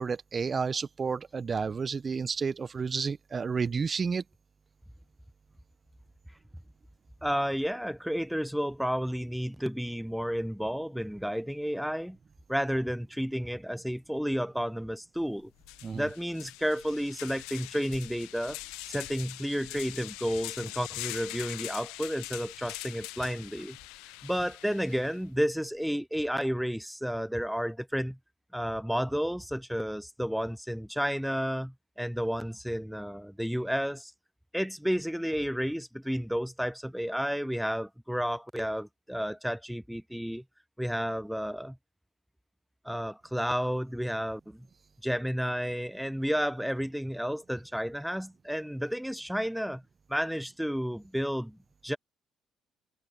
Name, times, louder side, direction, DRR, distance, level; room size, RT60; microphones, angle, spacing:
voice 1, 0.0-4.2 15.8-16.1, right 5 dB, 40° right, 1.1 m, -31 dB
voice 2, 7.2-12.2 12.5-15.5 15.9-18.6 18.9-23.8 24.2-28.2 28.5-34.1 34.5-40.4 40.8-41.8 42.8-44.7 45.0-49.8 50.1-52.0, equal, ahead, 0.5 m, -31 dB
sound 1, 15.2-15.3 15.6-25.2, left 22 dB, 80° left, 0.8 m, -43 dB
hypercardioid pair, 55°, 0 cm